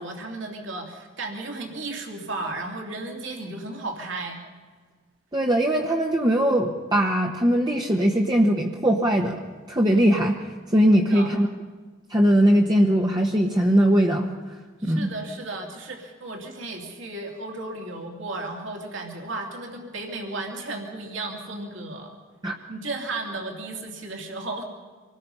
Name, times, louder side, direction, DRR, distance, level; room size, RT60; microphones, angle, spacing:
voice 1, 0.0-4.4 11.1-11.3 14.8-22.2 22.7-24.6, right 2 dB, 65° right, 2 dB, 2.8 m, -34 dB
voice 2, 5.3-9.4 9.7-10.4 10.7-11.5 12.1-14.3 14.8-15.1 22.4-22.5, equal, 20° right, 0 dB, 1.0 m, -20 dB
26.0 x 19.0 x 5.5 m, 1.5 s
head